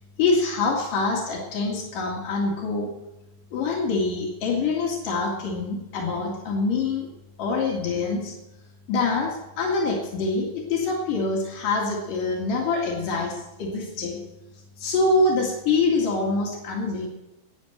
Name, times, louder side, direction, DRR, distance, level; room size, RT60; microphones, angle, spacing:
voice 1, 0.2-2.9 3.5-7.1 7.4-8.3 8.9-14.2 14.8-17.1, left 3 dB, 85° left, -1 dB, 3.7 m, -25 dB
12.5 x 9.1 x 7.8 m, 0.99 s
omnidirectional pair, 3.7 m